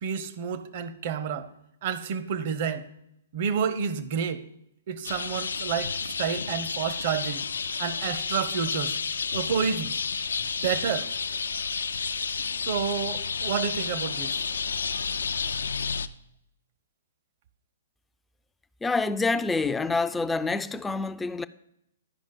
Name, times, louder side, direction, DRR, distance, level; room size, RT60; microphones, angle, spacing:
voice 1, 0.0-1.5 1.8-2.9 3.3-4.4 4.9-7.4 7.8-9.0 9.3-9.9 10.4-11.1 12.6-14.4, right 7 dB, 50° right, 0.7 m, -29 dB
sound 1, 5.0-16.1, left 5 dB, 80° left, 0.4 m, -31 dB
voice 2, 18.8-21.5, left 3 dB, 10° left, 0.3 m, -27 dB
11.0 x 5.2 x 5.2 m
hypercardioid pair, 130°, 0 cm